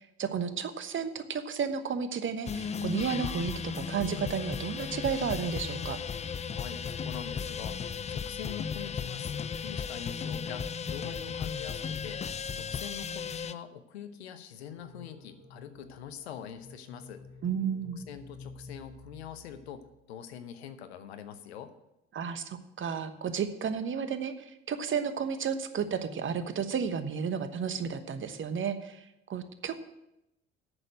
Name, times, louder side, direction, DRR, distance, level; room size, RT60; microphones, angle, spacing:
voice 1, 0.0-6.0 17.4-18.0 22.1-29.8, right 6 dB, 40° right, 10 dB, 1.1 m, -32 dB
sound 1, 2.5-13.5, left 6 dB, 20° left, 0.4 m, -35 dB
voice 2, 6.5-12.2 12.5-17.2 18.1-21.7, left 9 dB, 80° left, 10 dB, 0.9 m, -44 dB
sound 2, 14.6-20.0, left 3 dB, 55° left, 3.3 m, -51 dB
8.7 x 6.7 x 7.8 m, 0.88 s
hypercardioid pair, 60°, 31 cm